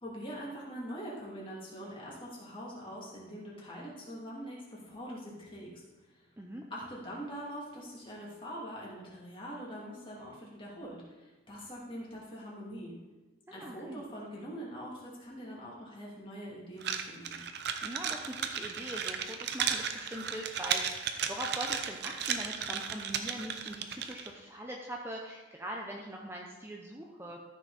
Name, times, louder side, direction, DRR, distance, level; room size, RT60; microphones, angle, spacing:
voice 1, 0.0-5.8 6.1-6.3 6.7-12.9 13.5-17.4, equal, 25° left, -5 dB, 2.6 m, -43 dB
voice 2, 13.5-14.0 17.8-27.4, right 1 dB, 10° right, 0 dB, 0.7 m, -42 dB
sound 1, 16.8-24.3, right 7 dB, 55° right, 0.7 m, -35 dB
13.5 x 6.2 x 4.2 m, 1.2 s
head